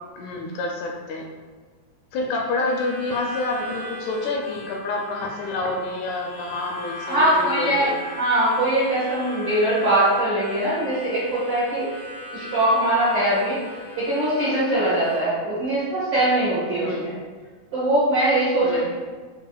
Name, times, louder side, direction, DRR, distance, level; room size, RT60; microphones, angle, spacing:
voice 1, 0.2-1.2 2.1-7.9 16.7-17.1 18.6-18.8, left 2 dB, 80° left, 0 dB, 1.8 m, -28 dB
Harmonica, 2.6-15.2, left 1 dB, 45° right, 0.5 m, -38 dB
voice 2, 7.1-11.9 12.3-13.6 13.9-17.1 17.7-18.8, right 1 dB, 65° right, -10 dB, 1.2 m, -21 dB
6.4 x 2.8 x 2.3 m, 1.5 s
omnidirectional pair, 3.5 m